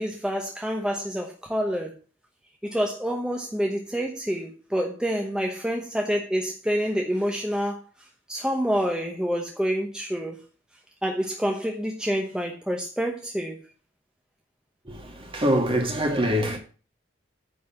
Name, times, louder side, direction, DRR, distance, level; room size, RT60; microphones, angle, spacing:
voice 1, 0.0-1.9 2.6-7.8 8.3-10.4 11.0-13.6, equal, 5° right, 0.9 m, -27 dB
voice 2, 15.3-16.6, equal, 30° right, 2.0 m, -23 dB
9.6 x 4.2 x 7.1 m
head